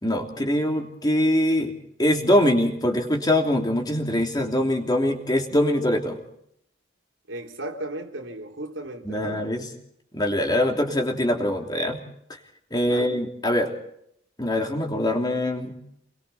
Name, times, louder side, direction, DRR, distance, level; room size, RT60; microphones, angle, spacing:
voice 1, 0.0-1.7 2.0-6.2 9.0-9.7 10.1-12.0 12.7-13.7 14.4-15.7, left 1 dB, 20° left, 3.1 m, -23 dB
voice 2, 7.3-9.5 12.8-13.2, right 1 dB, 85° right, 3.8 m, -35 dB
29.5 x 22.0 x 4.3 m
head